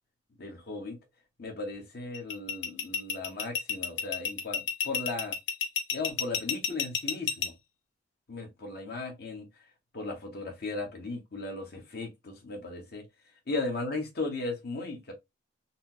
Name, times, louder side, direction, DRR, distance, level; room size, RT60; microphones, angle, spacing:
voice 1, 0.4-1.0 1.4-5.3 5.9-7.5 8.3-9.5 9.9-13.0 13.5-15.1, left 3 dB, 60° left, 1.0 m, -36 dB
sound 1, 2.1-7.5, left 7 dB, 80° left, 0.7 m, -30 dB
4.0 x 2.0 x 2.7 m
head